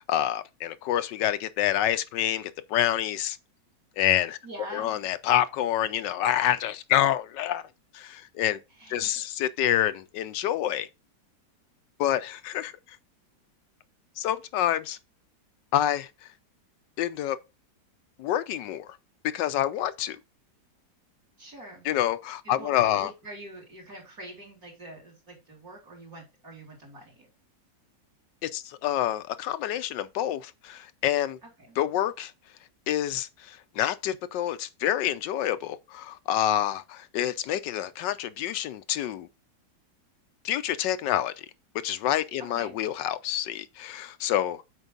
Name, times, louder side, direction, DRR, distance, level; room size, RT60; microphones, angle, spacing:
voice 1, 0.0-3.4 4.0-4.4 4.7-7.7 7.9-8.6 8.9-10.9 12.0-12.7 14.2-15.0 15.7-16.1 17.0-17.4 18.2-19.0 19.3-20.2 21.8-23.1 28.4-31.4 31.8-32.3 32.9-39.3 40.4-41.3 41.8-44.6, left 12 dB, 80° left, 1.2 m, -27 dB
voice 2, 4.4-5.0 8.8-9.1 21.4-21.9 22.4-27.3 31.4-31.8 42.5-42.8, right 1 dB, 50° right, 3.3 m, -45 dB
8.1 x 4.5 x 3.8 m
omnidirectional pair, 2.0 m